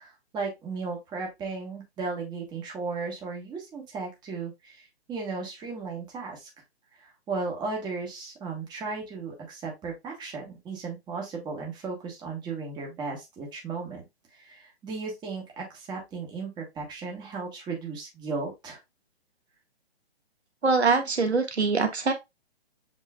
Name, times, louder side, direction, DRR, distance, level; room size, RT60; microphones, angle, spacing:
voice 1, 0.0-6.5 7.0-14.0 14.3-18.8, right 4 dB, 15° right, 1.3 m, -35 dB
voice 2, 20.6-22.1, right 4 dB, 80° right, 1.3 m, -23 dB
7.4 x 3.1 x 2.3 m
figure-of-eight pair, 135°, 32 cm